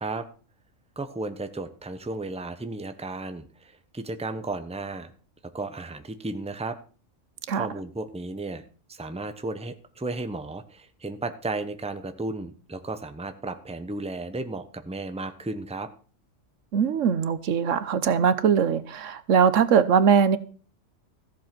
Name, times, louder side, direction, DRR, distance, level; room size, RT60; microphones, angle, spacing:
voice 1, 1.0-5.1 5.4-6.8 7.5-8.6 8.9-15.9, right 2 dB, 5° right, 0.9 m, -34 dB
voice 2, 16.7-20.4, right 7 dB, 75° right, 1.2 m, -21 dB
14.5 x 7.6 x 6.0 m
omnidirectional pair, 1.3 m